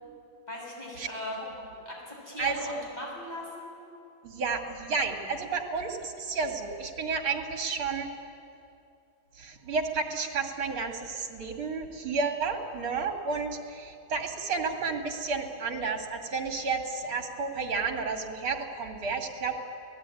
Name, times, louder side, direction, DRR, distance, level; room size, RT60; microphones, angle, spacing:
voice 1, 0.5-1.4 1.8-3.7, left 1 dB, 20° left, -2 dB, 6.8 m, -39 dB
voice 2, 2.4-2.8 4.2-8.1 9.4-19.6, right 4 dB, 75° right, 3 dB, 3.2 m, -31 dB
28.5 x 19.0 x 9.9 m, 2.6 s
omnidirectional pair, 2.3 m